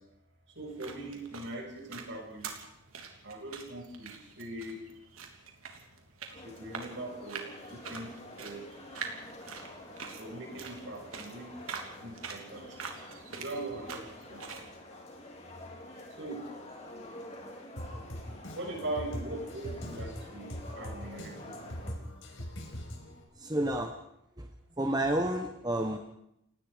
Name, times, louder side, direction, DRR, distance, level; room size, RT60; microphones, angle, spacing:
voice 1, 0.5-2.5 3.2-4.8 6.3-7.4 7.7-8.1 8.4-8.7 10.2-11.5 12.0-12.8 13.4-14.4 16.1-17.4 17.9-22.0, right 2 dB, 55° right, 1 dB, 6.8 m, -41 dB
sound 1, 0.5-14.7, right 5 dB, 80° right, 3.2 m, -45 dB
sound 2, 6.3-21.9, left 1 dB, 30° left, 4.0 m, -48 dB
Drum kit, 17.8-23.2, equal, 70° left, 5.1 m, -42 dB
voice 2, 23.4-23.9 24.4-24.5 24.8-26.0, right 1 dB, 20° right, 4 dB, 1.1 m, -30 dB
30.0 x 18.5 x 5.1 m, 0.81 s
head